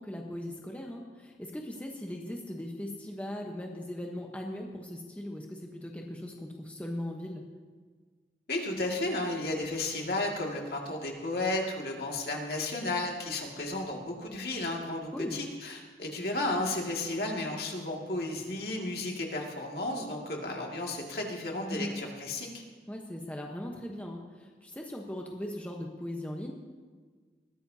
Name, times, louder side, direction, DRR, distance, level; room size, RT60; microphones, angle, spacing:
voice 1, 0.0-7.4 15.1-15.4 21.7-22.0 22.9-26.5, left 1 dB, 10° left, 0 dB, 1.0 m, -39 dB
voice 2, 8.5-22.6, left 2 dB, 60° left, 0 dB, 2.2 m, -33 dB
20.5 x 14.5 x 2.8 m, 1.5 s
head